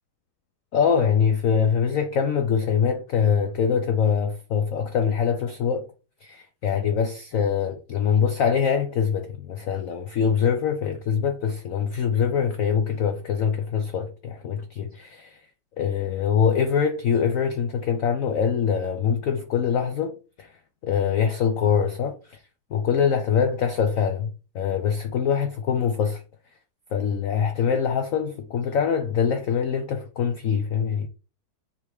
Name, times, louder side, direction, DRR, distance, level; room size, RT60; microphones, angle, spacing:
voice 1, 0.7-5.9 6.2-15.4 15.8-20.5 20.8-22.4 22.7-26.2 26.9-31.1, left 7 dB, 70° left, 0.7 m, -24 dB
7.3 x 4.1 x 3.5 m
omnidirectional pair, 2.3 m